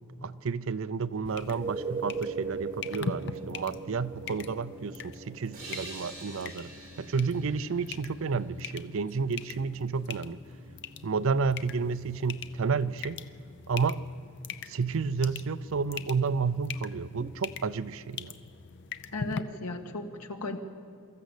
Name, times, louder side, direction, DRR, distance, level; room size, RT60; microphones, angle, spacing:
voice 1, 0.2-5.0 5.3-6.7 7.0-10.4 11.0-13.2 13.7-14.0 14.7-18.3, right 5 dB, 60° right, 15 dB, 0.5 m, -31 dB
sound 1, 1.2-19.4, left 5 dB, 55° left, 0.7 m, -43 dB
sound 2, 1.4-12.9 17.2-17.3, right 4 dB, 25° right, 0.8 m, -42 dB
sound 3, 5.5-9.0, right 2 dB, 40° right, 7.7 m, -47 dB
voice 2, 19.1-20.6, left 2 dB, 85° left, 5 dB, 1.8 m, -36 dB
24.0 x 14.0 x 8.3 m, 2.3 s
head